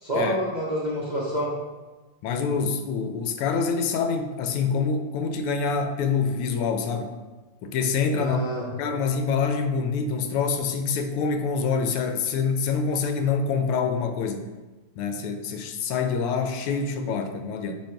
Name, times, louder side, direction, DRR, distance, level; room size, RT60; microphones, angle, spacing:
voice 1, 0.0-1.5 8.2-8.7, equal, 45° right, -5 dB, 0.5 m, -27 dB
voice 2, 2.2-7.2 7.6-8.4 8.8-14.5 15.0-17.8, left 5 dB, 90° left, 7 dB, 1.6 m, -26 dB
8.8 x 2.9 x 4.5 m, 1.2 s
omnidirectional pair, 2.4 m